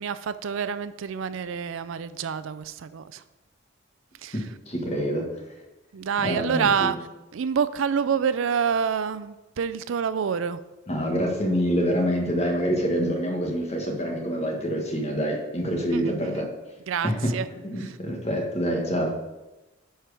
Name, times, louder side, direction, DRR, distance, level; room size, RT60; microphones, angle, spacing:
voice 1, 0.0-3.2 4.2-4.4 5.9-7.0 7.3-10.6 15.9-16.5 16.9-17.4 17.8-18.0, right 7 dB, 75° right, 13 dB, 0.4 m, -27 dB
voice 2, 4.3-5.4 6.2-6.9 10.9-16.5 17.0-17.3 17.6-19.1, equal, 30° left, 1 dB, 1.5 m, -26 dB
10.5 x 4.5 x 4.8 m, 1.1 s
head